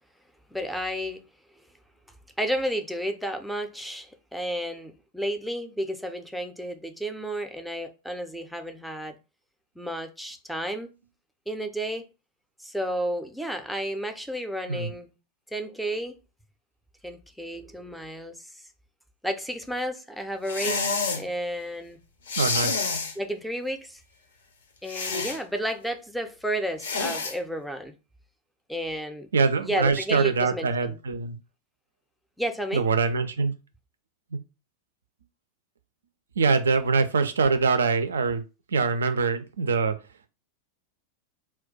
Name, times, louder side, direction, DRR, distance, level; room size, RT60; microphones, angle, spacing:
voice 1, 0.5-1.2 2.4-9.2 9.8-10.9 11.5-12.1 12.6-15.1 15.5-16.2 17.0-18.6 19.2-20.9 21.2-22.0 23.2-24.0 24.8-27.9 28.7-29.3 29.6-31.0 32.4-32.8, equal, ahead, 0.4 m, -32 dB
sound 1, 20.5-21.2 22.3-23.1 24.9-25.4 26.8-27.3, left 4 dB, 65° left, 0.5 m, -28 dB
voice 2, 22.4-22.8 29.3-31.4 32.7-33.5 34.3-34.4 36.4-38.4 38.7-39.9, right 4 dB, 70° right, 0.3 m, -24 dB
2.3 x 2.2 x 3.8 m
figure-of-eight pair, 90°, 0 cm